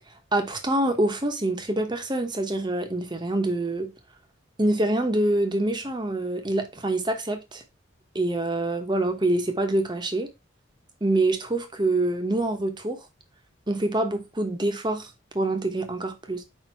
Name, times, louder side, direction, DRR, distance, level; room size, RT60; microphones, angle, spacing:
voice 1, 0.3-3.9 4.6-7.6 8.1-10.3 11.0-13.0 13.7-15.1 15.3-16.4, right 2 dB, 20° right, 1.0 m, -25 dB
5.1 x 4.5 x 4.4 m
head